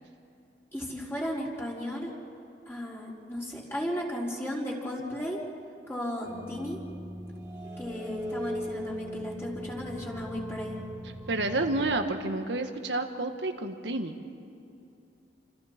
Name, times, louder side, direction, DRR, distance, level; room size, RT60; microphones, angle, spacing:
voice 1, 0.7-2.1 2.7-5.4 5.9-6.8 7.8-10.8, equal, 15° left, -5 dB, 4.4 m, -35 dB
sound 1, 6.2-12.0, equal, 15° right, 3.2 m, -39 dB
voice 2, 11.3-14.2, right 2 dB, 85° right, 6 dB, 1.7 m, -30 dB
29.5 x 27.0 x 4.5 m, 2.7 s
head